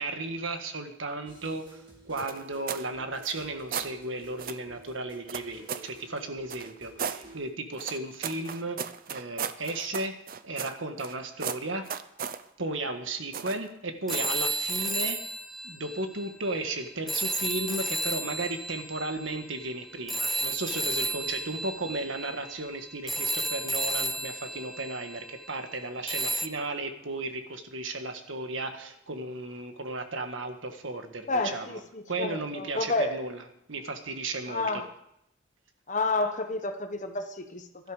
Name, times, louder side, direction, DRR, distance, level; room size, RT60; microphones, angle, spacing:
voice 1, 0.0-8.8 9.1-10.2 10.4-11.9 12.6-15.2 15.6-31.8 32.1-33.4 33.7-34.8, right 2 dB, 70° right, 6 dB, 1.6 m, -35 dB
sound 1, 1.3-7.4, right 3 dB, 25° right, 2.8 m, -52 dB
sound 2, 2.2-2.9 3.2-3.9 4.4-4.6 5.3-5.9 6.5-7.2 7.8-11.1 11.4-12.4 13.3-13.7 14.1-14.4, right 7 dB, 45° right, 0.6 m, -36 dB
sound 3, 14.1-16.5 17.1-25.5 26.1-26.5, right 1 dB, ahead, 0.5 m, -32 dB
voice 2, 31.3-33.2 34.5-34.9 35.9-37.9, left 3 dB, 35° left, 7 dB, 1.3 m, -30 dB
16.5 x 12.5 x 5.0 m, 0.77 s
head